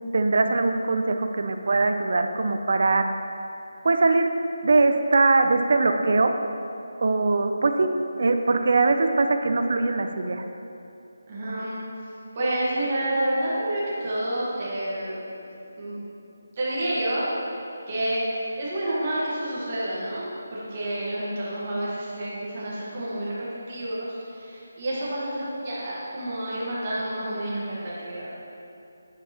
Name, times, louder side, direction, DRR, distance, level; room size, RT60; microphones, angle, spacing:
voice 1, 0.1-3.1 3.8-4.3 4.6-6.3 7.0-7.9 8.2-10.4, right 3 dB, 45° right, 6 dB, 0.4 m, -21 dB
voice 2, 11.3-16.0 16.5-17.3 17.9-28.3, right 1 dB, 25° right, -8 dB, 1.4 m, -29 dB
9.9 x 5.3 x 2.9 m, 2.7 s
hypercardioid pair, 175°, 0 cm